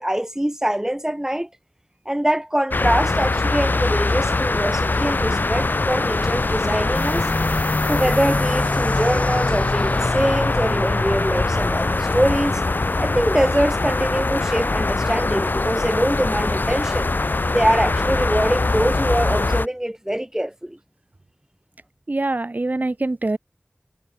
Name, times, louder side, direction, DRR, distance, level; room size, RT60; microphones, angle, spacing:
voice 1, 0.0-1.5 2.1-7.3 7.9-12.6 13.0-17.1 17.5-20.8, right 1 dB, 15° right, 7.5 m, -23 dB
sound 1, 2.7-19.7, left 3 dB, 65° left, 1.1 m, -22 dB
sound 2, 6.9-14.2, left 2 dB, 40° left, 1.8 m, -28 dB
voice 2, 22.1-23.4, right 2 dB, 55° right, 2.9 m, -24 dB
wide cardioid pair, 50°, 4 cm